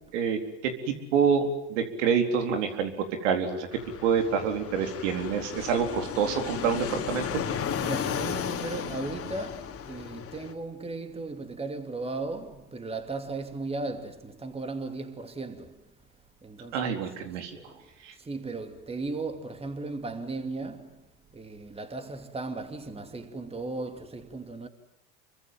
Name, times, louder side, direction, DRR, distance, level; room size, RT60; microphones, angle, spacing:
voice 1, 0.1-3.7 4.0-7.4 16.7-17.5 18.0-18.1, right 6 dB, 80° right, 4.2 m, -27 dB
Fixed-wing aircraft airplane, 3.7-10.5, left 8 dB, 40° left, 3.2 m, -34 dB
voice 2, 7.8-15.9 16.4-24.7, right 3 dB, 15° right, 2.7 m, -37 dB
27.5 x 24.0 x 7.7 m
supercardioid pair, 95°, 36 cm